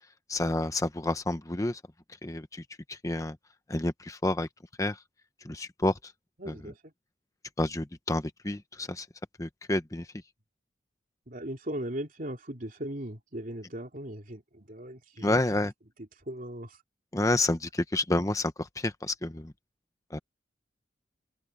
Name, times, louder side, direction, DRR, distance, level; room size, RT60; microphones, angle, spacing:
voice 1, 0.3-1.8 2.2-2.6 2.9-3.4 3.7-4.5 4.8-5.0 5.4-5.9 6.5-6.6 7.6-9.1 9.4-10.0 15.2-15.7 17.1-19.5 20.1-20.2, left 2 dB, 20° left, 0.9 m, -29 dB
voice 2, 6.4-6.9 11.3-15.4 16.0-16.8, right 1 dB, 50° right, 3.0 m, -38 dB
open air
head